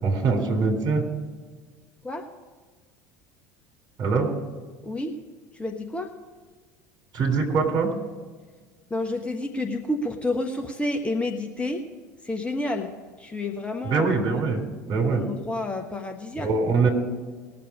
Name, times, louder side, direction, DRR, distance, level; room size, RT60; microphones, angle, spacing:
voice 1, 0.0-1.0 4.0-4.3 7.1-7.9 13.8-14.6 14.9-15.2 16.4-16.9, right 4 dB, 40° right, 2 dB, 3.5 m, -23 dB
voice 2, 4.8-5.1 5.5-6.1 8.9-11.8 12.2-12.9 13.2-14.4 15.1-16.5, left 2 dB, 10° left, 3 dB, 1.2 m, -30 dB
20.0 x 7.1 x 4.9 m, 1.5 s
figure-of-eight pair, 70°, 10 cm